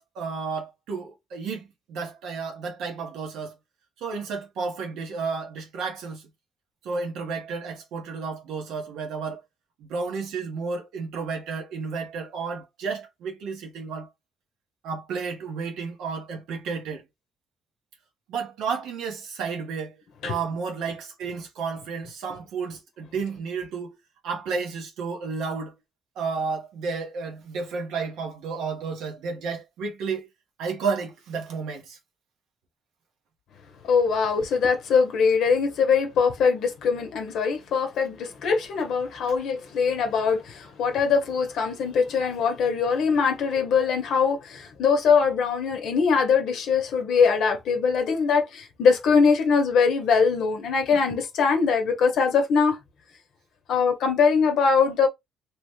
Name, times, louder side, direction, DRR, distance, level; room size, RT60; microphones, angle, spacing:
voice 1, 0.0-3.5 4.0-6.3 6.8-9.4 9.8-14.1 14.8-17.0 18.3-20.0 20.2-24.0 24.2-25.7 26.2-30.3 30.6-32.0 50.9-51.0, right 5 dB, 85° right, 0.9 m, -32 dB
voice 2, 33.8-52.8 53.7-55.1, left 5 dB, 75° left, 0.7 m, -22 dB
2.9 x 2.1 x 3.0 m
cardioid pair, 90°, 0 cm